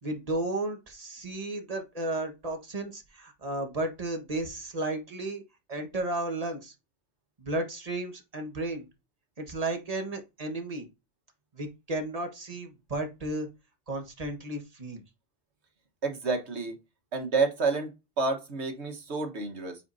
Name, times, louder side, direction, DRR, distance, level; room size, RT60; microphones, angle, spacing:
voice 1, 0.0-5.4 5.7-6.7 7.4-8.8 9.4-10.9 11.5-13.5 13.9-15.0, right 2 dB, 35° right, 1.6 m, -33 dB
voice 2, 16.0-16.8 17.1-17.9 18.2-19.8, right 4 dB, 80° right, 1.7 m, -29 dB
8.3 x 5.0 x 2.7 m
omnidirectional pair, 1.1 m